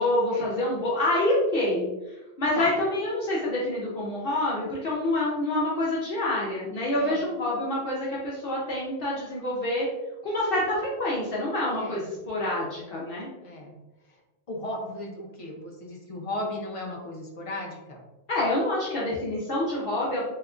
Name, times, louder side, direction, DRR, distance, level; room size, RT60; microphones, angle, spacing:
voice 1, 0.0-9.9 10.2-13.3 18.3-20.2, left 1 dB, 60° left, -6 dB, 0.9 m, -27 dB
voice 2, 13.4-13.7 14.5-18.0, left 1 dB, 35° left, -1 dB, 0.6 m, -35 dB
3.4 x 2.8 x 2.4 m, 1.0 s
omnidirectional pair, 1.1 m